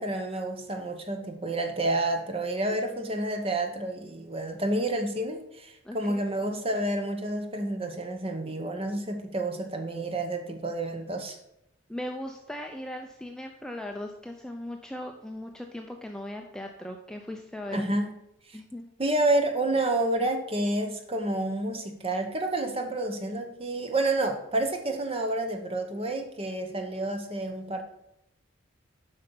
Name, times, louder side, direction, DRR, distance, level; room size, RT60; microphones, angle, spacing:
voice 1, 0.0-11.4 17.7-18.1 18.5-18.6 19.0-27.8, right 2 dB, 25° right, 5 dB, 0.9 m, -29 dB
voice 2, 5.8-6.2 11.9-17.9 18.5-18.9, left 1 dB, 5° left, 2 dB, 0.4 m, -38 dB
8.0 x 5.4 x 5.3 m, 0.84 s
head